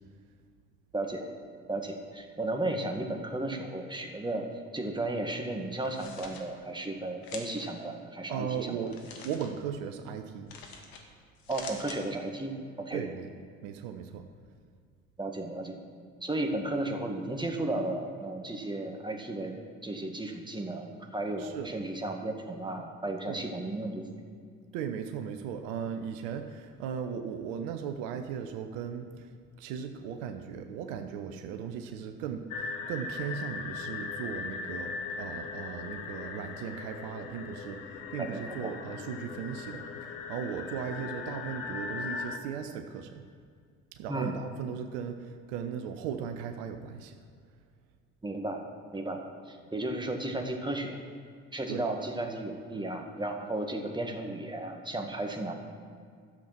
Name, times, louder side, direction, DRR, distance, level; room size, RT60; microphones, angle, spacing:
voice 1, 0.9-1.3 1.7-4.5 4.7-8.8 11.5-13.0 15.2-15.8 16.2-19.6 19.8-24.0 38.3-38.7 44.1-44.4 48.2-48.6 48.9-49.2 49.5-51.0 51.5-55.5, right 2 dB, 10° right, 3 dB, 1.9 m, -34 dB
sound 1, 5.8-6.4 7.2-7.7 8.9-9.5 10.5-11.0 11.4-12.0, left 5 dB, 65° left, 1.7 m, -45 dB
voice 2, 8.3-10.5 12.9-13.3 13.6-14.2 21.4-21.7 23.3-23.4 24.7-29.3 29.6-43.2 43.9-47.2 51.7-51.9, right 7 dB, 75° right, 7 dB, 0.9 m, -37 dB
sound 2, 32.5-42.4, left 5 dB, 85° left, 0.9 m, -39 dB
12.5 x 7.3 x 6.0 m, 2.1 s
hypercardioid pair, 55°, 39 cm